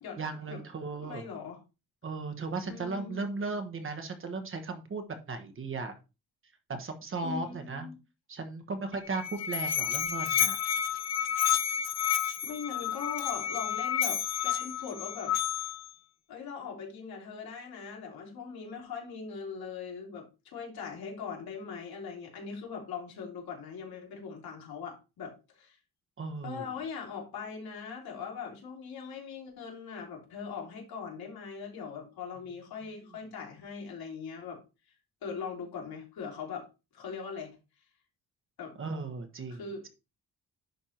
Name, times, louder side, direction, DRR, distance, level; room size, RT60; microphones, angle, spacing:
voice 1, 0.2-1.3 2.0-6.0 6.7-7.9 8.3-10.6 26.2-26.7 38.8-39.9, right 3 dB, 35° right, 1.2 m, -36 dB
voice 2, 1.0-1.6 2.6-3.2 7.2-7.9 12.4-15.4 16.3-25.8 26.4-34.6 35.2-36.7 36.9-37.5 38.6-38.8 39.5-39.9, left 6 dB, 70° left, 3.0 m, -40 dB
Musical instrument, 8.9-15.9, left 9 dB, 45° left, 0.6 m, -30 dB
10.5 x 3.6 x 4.4 m
cardioid pair, 160°, 38 cm